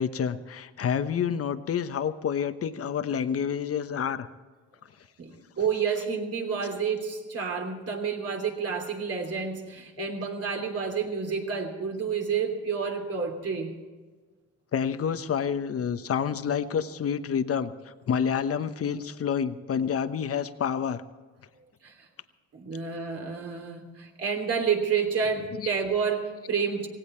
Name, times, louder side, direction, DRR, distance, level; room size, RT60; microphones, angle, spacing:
voice 1, 0.0-4.3 5.9-6.1 10.0-10.1 14.7-17.7 18.1-21.0 25.5-25.7, left 7 dB, 50° left, 11 dB, 1.1 m, -28 dB
voice 2, 5.2-13.7 21.8-22.1 22.5-26.9, right 6 dB, 50° right, 3 dB, 3.2 m, -29 dB
17.5 x 17.0 x 4.5 m, 1.4 s
cardioid pair, 90°, 30 cm